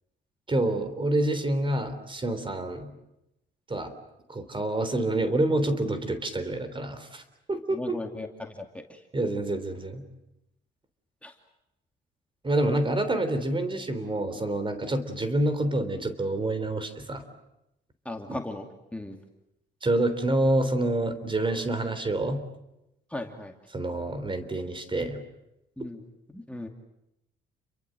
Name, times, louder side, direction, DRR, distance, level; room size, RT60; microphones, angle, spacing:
voice 1, 0.5-2.9 3.7-3.9 4.3-7.2 7.5-8.0 9.1-10.0 12.4-17.2 18.3-18.4 19.8-22.4 23.7-25.2, right 1 dB, 25° right, 11 dB, 3.4 m, -27 dB
voice 2, 7.7-9.0 11.2-11.3 18.0-19.2 23.1-23.5 25.8-26.0 26.3-26.7, left 1 dB, 5° left, 3 dB, 2.4 m, -37 dB
30.0 x 23.0 x 7.8 m, 0.87 s
cardioid pair, 90°, 20 cm